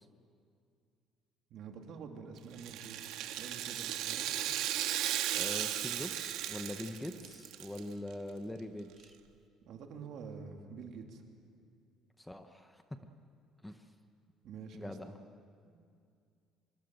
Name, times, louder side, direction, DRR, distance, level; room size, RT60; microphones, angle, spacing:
voice 1, 1.5-4.3 9.7-11.2 14.4-15.0 15.6-15.8, right 5 dB, 55° right, 3 dB, 2.7 m, -47 dB
Rattle (instrument), 2.5-7.8 8.1-8.2 9.0-9.1, right 12 dB, 75° right, 1.5 m, -36 dB
voice 2, 5.3-9.2 12.2-12.8 13.6-13.9 14.7-15.2, left 1 dB, 5° left, 7 dB, 0.9 m, -43 dB
24.5 x 24.5 x 7.8 m, 2.3 s
cardioid pair, 160°, 0 cm